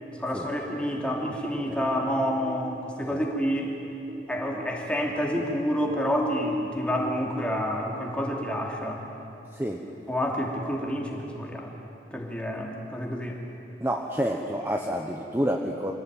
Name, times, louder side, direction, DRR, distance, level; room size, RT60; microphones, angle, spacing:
voice 1, 0.2-3.8 4.3-9.0 10.1-11.7 12.1-13.4, equal, 5° left, -1 dB, 2.9 m, -29 dB
sound 1, 0.7-4.2 4.5-8.6, left 1 dB, 30° right, 4.7 m, -36 dB
voice 2, 9.5-9.8 13.8-15.9, equal, 10° right, 1 dB, 1.1 m, -28 dB
26.0 x 17.5 x 9.2 m, 2.8 s
head